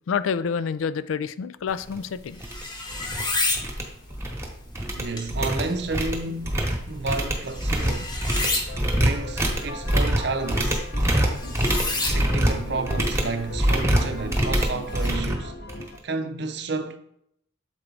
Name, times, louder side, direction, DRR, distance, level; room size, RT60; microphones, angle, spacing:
voice 1, 0.1-2.4, left 6 dB, 80° left, 0.4 m, -28 dB
sound 1, 1.7-15.1, left 2 dB, 20° left, 0.9 m, -34 dB
sound 2, 1.9-2.0 2.4-2.6 2.9-3.2 3.5-4.5 4.8-16.0, right 1 dB, 15° right, 1.1 m, -25 dB
voice 2, 4.9-8.2 8.9-10.9 12.1-15.6 16.0-17.0, right 3 dB, 55° right, 0.6 m, -31 dB
sound 3, 8.4-16.0, left 2 dB, 55° left, 0.7 m, -40 dB
7.4 x 4.5 x 3.9 m
head